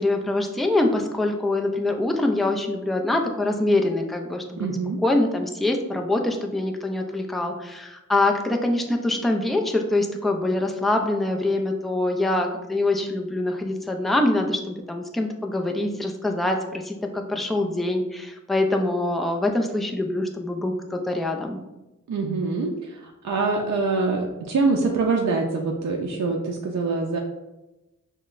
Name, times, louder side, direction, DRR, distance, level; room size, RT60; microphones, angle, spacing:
voice 1, 0.0-4.7 5.0-21.6, left 2 dB, ahead, 3 dB, 0.3 m, -24 dB
voice 2, 4.6-5.0 22.1-27.2, right 3 dB, 60° right, 0 dB, 0.5 m, -24 dB
5.7 x 2.1 x 2.5 m, 1.0 s
wide cardioid pair, 100°, 31 cm